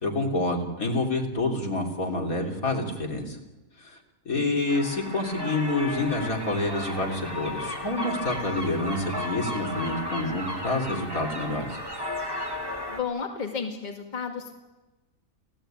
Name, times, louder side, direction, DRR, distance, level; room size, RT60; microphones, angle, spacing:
voice 1, 0.0-3.4 3.8-4.0 4.3-11.8, left 2 dB, 65° left, 1 dB, 3.9 m, -28 dB
sound 1, 4.7-13.0, left 1 dB, 15° right, 2.6 m, -34 dB
voice 2, 12.9-14.6, left 6 dB, 30° left, 2 dB, 2.3 m, -32 dB
29.5 x 17.0 x 9.1 m, 1.1 s
omnidirectional pair, 1.6 m